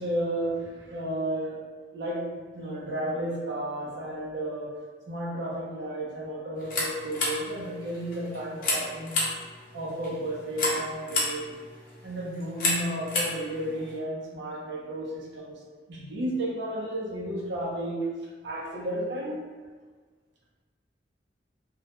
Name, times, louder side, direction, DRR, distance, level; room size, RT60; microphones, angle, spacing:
voice 1, 0.0-1.6 1.9-9.3 9.7-11.6 12.0-15.5 15.9-18.2 18.4-19.4, right 1 dB, 80° right, -3 dB, 0.6 m, -33 dB
sound 1, 6.6-14.0, left 2 dB, 50° left, 0.6 m, -32 dB
2.3 x 2.1 x 2.8 m, 1.5 s
head